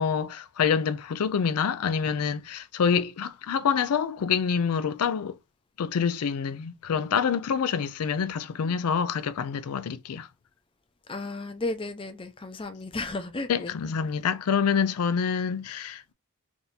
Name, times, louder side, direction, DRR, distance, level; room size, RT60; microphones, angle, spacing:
voice 1, 0.0-5.4 5.8-10.3 13.5-16.1, left 6 dB, 85° left, 0.4 m, -26 dB
voice 2, 11.1-13.7, left 2 dB, 25° left, 0.6 m, -34 dB
3.5 x 2.8 x 4.0 m
head